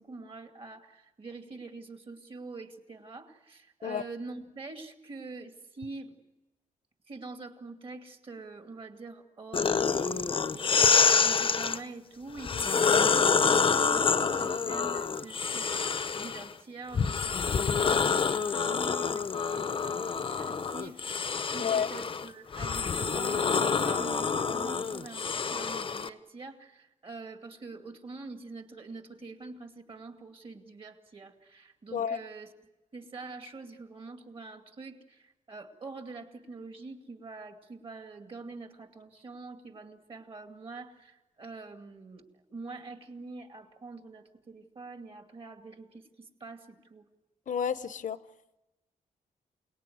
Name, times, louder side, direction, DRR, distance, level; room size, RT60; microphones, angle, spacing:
voice 1, 0.0-6.2 7.1-32.5 32.9-47.1, right 3 dB, 40° right, 5 dB, 2.4 m, -45 dB
sound 1, 9.5-11.8 12.4-16.5 16.9-26.1, left 5 dB, 40° left, 0.8 m, -27 dB
voice 2, 47.5-48.2, left 7 dB, 70° left, 14 dB, 0.9 m, -30 dB
28.5 x 19.0 x 9.6 m, 1.0 s
wide cardioid pair, 145°, 14 cm